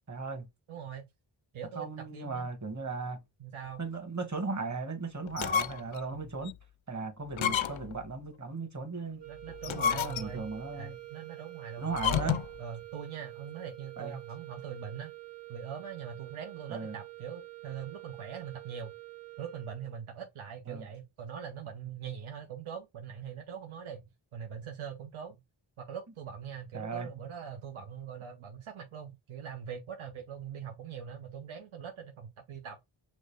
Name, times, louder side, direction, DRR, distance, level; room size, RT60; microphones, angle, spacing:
voice 1, 0.1-0.5 1.8-3.2 3.8-6.6 6.9-9.2 9.7-11.0 11.8-12.4 14.0-14.2 16.7-17.0 20.7-20.9 26.7-27.1, right 4 dB, 35° right, 1.3 m, -37 dB
voice 2, 0.7-1.0 1.5-2.5 3.4-3.8 6.1-6.3 7.4-7.5 9.3-10.5 10.7-11.9 12.2-15.1 15.5-18.9 19.4-24.1 24.3-25.4 25.8-32.8, right 8 dB, 80° right, 0.8 m, -42 dB
sound 1, 5.3-6.0 6.5-6.6 7.3-8.0 9.5-10.5 11.9-12.6, left 8 dB, 70° left, 0.5 m, -31 dB
sound 2, 9.2-20.1, right 18 dB, 55° right, 1.9 m, -47 dB
6.0 x 2.5 x 3.3 m
wide cardioid pair, 60°, 49 cm